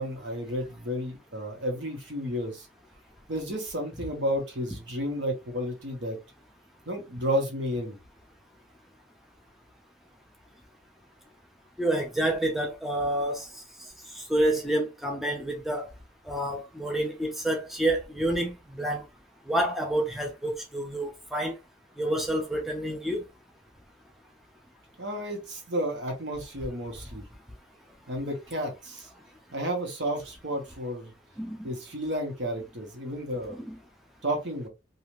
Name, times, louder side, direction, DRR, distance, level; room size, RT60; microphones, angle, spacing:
voice 1, 0.0-2.7 3.3-6.2 6.9-8.0 25.0-27.2 28.1-29.1 29.5-31.1 31.6-33.6 34.2-34.7, equal, 70° right, 1.2 m, -32 dB
voice 2, 11.8-13.5 14.2-15.9 16.3-19.0 19.5-21.5 22.0-23.2 31.4-31.6 33.5-33.8, right 1 dB, ahead, 0.5 m, -28 dB
2.8 x 2.4 x 3.0 m
head